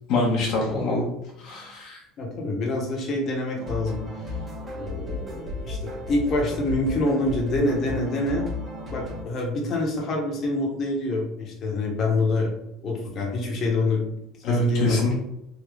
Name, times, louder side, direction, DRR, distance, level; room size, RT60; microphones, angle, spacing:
voice 1, 0.1-1.0 1.4-2.0 14.4-15.2, left 2 dB, 65° left, -2 dB, 1.1 m, -25 dB
voice 2, 2.2-4.4 4.8-8.5 8.9-12.5 12.8-14.1 14.5-15.0, left 2 dB, 45° left, -1 dB, 1.2 m, -26 dB
sound 1, 3.6-9.2, left 2 dB, 30° right, 1.3 m, -34 dB
3.8 x 2.7 x 3.3 m, 0.82 s
supercardioid pair, 95°, 0 cm